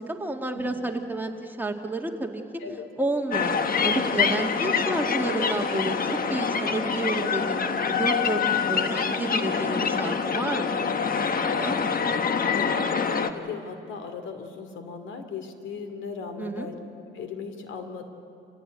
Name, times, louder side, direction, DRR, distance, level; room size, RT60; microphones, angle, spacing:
voice 1, 0.1-2.4 3.0-3.6 3.8-8.4 8.7-10.9 11.3-11.8 16.4-16.7, right 2 dB, 10° right, 2 dB, 2.2 m, -30 dB
sound 1, 3.3-13.3, left 6 dB, 45° left, 1.3 m, -25 dB
voice 2, 11.4-11.9 12.4-16.7 17.1-18.0, left 5 dB, 75° left, 7 dB, 2.6 m, -37 dB
26.5 x 16.5 x 9.2 m, 2.7 s
cardioid pair, 90°, 20 cm